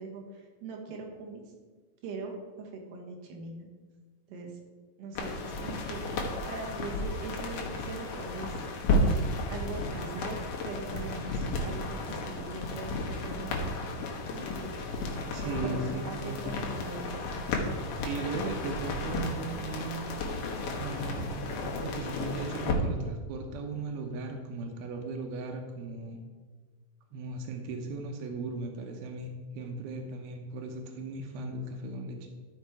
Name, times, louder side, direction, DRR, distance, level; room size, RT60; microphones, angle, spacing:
voice 1, 0.0-1.5 2.0-3.7 4.3-4.6 5.0-6.0 6.5-8.6 9.5-13.8 14.3-14.7 15.4-17.2, right 3 dB, 65° right, 1 dB, 2.9 m, -41 dB
sound 1, 5.2-22.7, left 2 dB, 65° left, 2.7 m, -33 dB
voice 2, 15.3-16.4 18.0-20.0 20.8-26.2 27.1-32.2, right 3 dB, 90° right, 4 dB, 2.8 m, -37 dB
13.0 x 5.9 x 4.6 m, 1.4 s
omnidirectional pair, 4.2 m